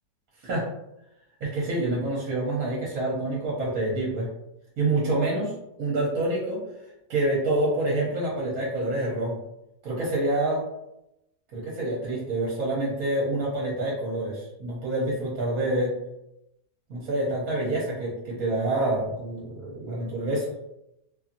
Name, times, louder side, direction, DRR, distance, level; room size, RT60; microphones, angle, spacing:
voice 1, 1.4-4.3 4.8-5.5 5.8-6.6 7.1-9.4 9.8-10.6 11.5-15.9 16.9-20.7, right 2 dB, 65° right, -4 dB, 1.1 m, -27 dB
2.8 x 2.6 x 2.5 m, 0.86 s
omnidirectional pair, 1.8 m